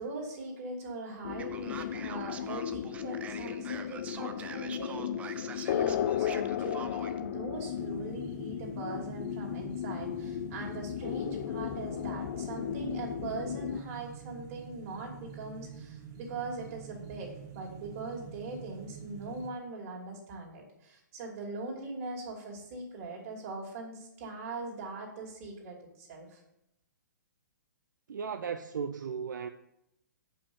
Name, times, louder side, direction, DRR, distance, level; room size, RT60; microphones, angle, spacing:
voice 1, 0.0-26.4, right 3 dB, 45° right, 2.8 m, -41 dB
sound 1, 1.2-13.8, left 10 dB, 50° left, 0.4 m, -35 dB
Male speech man speaking, 1.4-7.2, right 6 dB, 15° right, 0.5 m, -45 dB
sound 2, 7.6-19.5, right 7 dB, 30° right, 1.0 m, -47 dB
voice 2, 28.1-29.5, right 6 dB, 75° right, 0.5 m, -36 dB
6.8 x 5.5 x 7.0 m
hypercardioid pair, 135°, 10 cm